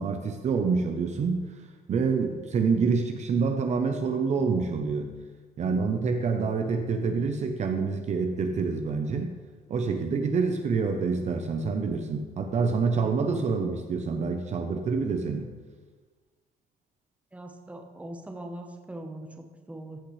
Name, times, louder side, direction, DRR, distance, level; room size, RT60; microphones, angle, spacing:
voice 1, 0.0-1.4 1.9-5.1 5.6-9.3 9.7-15.5, right 5 dB, 45° right, 5 dB, 0.7 m, -27 dB
voice 2, 17.3-20.0, right 1 dB, 10° right, 3 dB, 1.0 m, -41 dB
14.5 x 5.8 x 3.2 m, 1.4 s
cardioid pair, 110°, 17 cm